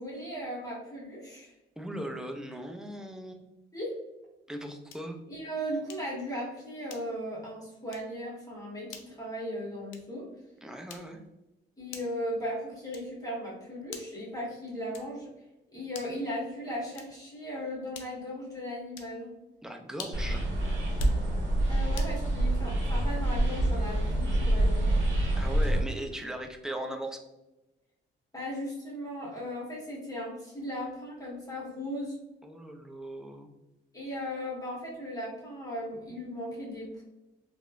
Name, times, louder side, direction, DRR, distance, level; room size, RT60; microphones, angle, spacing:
voice 1, 0.0-1.5 3.7-3.9 5.3-10.3 11.8-15.3 15.7-19.3 21.7-24.9 28.3-32.1 33.9-37.0, equal, 20° left, -5 dB, 1.0 m, -37 dB
voice 2, 1.8-3.5 4.5-5.2 10.6-11.2 19.6-20.4 25.4-27.2 32.4-33.5, right 1 dB, 5° right, 3 dB, 0.3 m, -38 dB
sound 1, 4.9-5.2 5.9-6.2 6.9-7.3 7.9-8.2 8.9-9.2 9.9-10.2 10.9-11.3 11.9-12.3 12.9-13.3 13.9-14.3 14.9-15.3 15.9-16.3 16.9-17.3 17.9-18.3 18.9-19.2 19.9-20.3 20.9-21.2 21.9-22.2, left 6 dB, 80° left, 0.4 m, -47 dB
sound 2, 20.1-25.8, right 1 dB, 70° right, 0.8 m, -26 dB
2.9 x 2.0 x 2.4 m, 0.99 s
cardioid pair, 90°, 20 cm